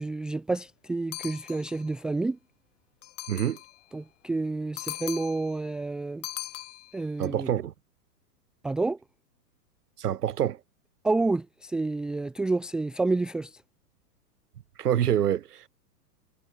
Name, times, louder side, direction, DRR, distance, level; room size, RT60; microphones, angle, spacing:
voice 1, 0.0-2.4 3.9-6.2 6.9-7.5 8.6-9.0 11.0-13.6, right 3 dB, ahead, 0.7 m, -29 dB
sound 1, 1.1-1.9 3.0-3.8 4.8-5.6 6.2-7.3, left 14 dB, 50° left, 6.6 m, -39 dB
voice 2, 3.3-3.6 7.2-7.7 10.0-10.6 14.8-15.7, right 10 dB, 70° right, 5.6 m, -26 dB
hypercardioid pair, 170°, 48 cm